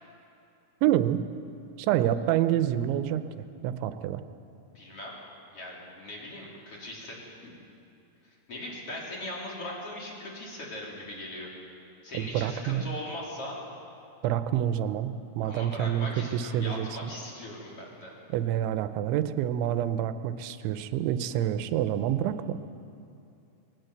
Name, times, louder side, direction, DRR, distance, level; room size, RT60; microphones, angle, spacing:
voice 1, 0.8-1.2 1.8-3.2 3.6-4.2 12.1-12.9 14.2-17.1 18.3-22.6, right 11 dB, 80° right, 11 dB, 3.0 m, -27 dB
voice 2, 4.7-5.2 5.5-7.2 7.4-7.6 8.5-11.5 12.0-13.6 15.4-18.1, left 1 dB, 30° left, -4 dB, 4.0 m, -39 dB
21.0 x 18.0 x 8.0 m, 2.7 s
omnidirectional pair, 5.4 m